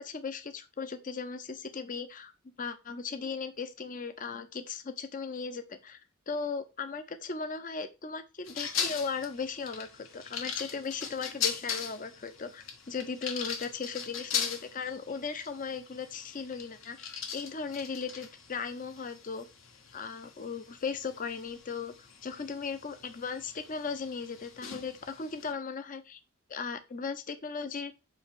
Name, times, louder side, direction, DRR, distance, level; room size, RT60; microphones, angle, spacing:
voice 1, 0.0-2.3 2.6-6.0 6.3-17.0 17.3-19.5 19.9-26.2 26.5-27.9, left 5 dB, 40° left, 9 dB, 0.6 m, -37 dB
sound 1, 8.5-25.5, left 7 dB, 65° left, 1.2 m, -40 dB
7.6 x 3.1 x 5.1 m, 0.27 s
head